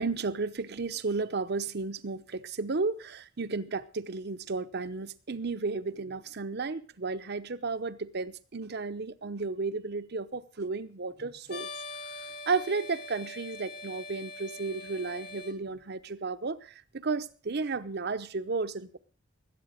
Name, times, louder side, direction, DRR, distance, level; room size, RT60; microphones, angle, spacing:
voice 1, 0.0-11.7 12.5-16.6 16.9-19.0, right 4 dB, 50° right, 0.8 m, -33 dB
sound 1, 11.5-15.5, left 3 dB, 50° left, 2.0 m, -43 dB
20.5 x 8.5 x 5.0 m
head